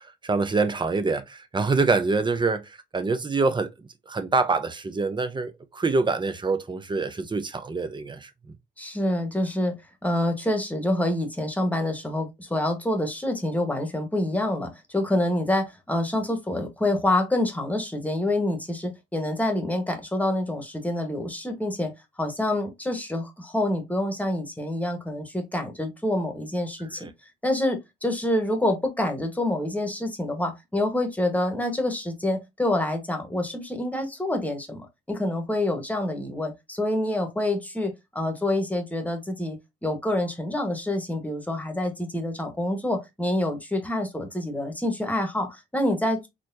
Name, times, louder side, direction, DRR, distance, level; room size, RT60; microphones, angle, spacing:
voice 1, 0.0-3.7 4.1-8.3 27.0-27.1, right 3 dB, 25° right, 0.8 m, -25 dB
voice 2, 8.8-9.7 10.0-21.9 22.2-27.1 27.4-39.6 39.8-46.3, left 1 dB, 10° left, 1.3 m, -27 dB
4.1 x 3.1 x 2.7 m
cardioid pair, 90°, 20 cm